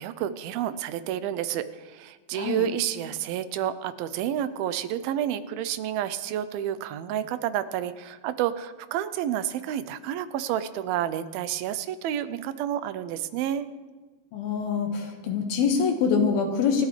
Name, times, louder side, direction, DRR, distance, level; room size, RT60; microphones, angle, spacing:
voice 1, 0.0-13.7, right 10 dB, 80° right, 12 dB, 2.5 m, -30 dB
voice 2, 2.3-2.7 14.3-16.9, left 6 dB, 80° left, 3 dB, 3.5 m, -25 dB
27.5 x 12.5 x 3.3 m, 1.3 s
omnidirectional pair, 4.3 m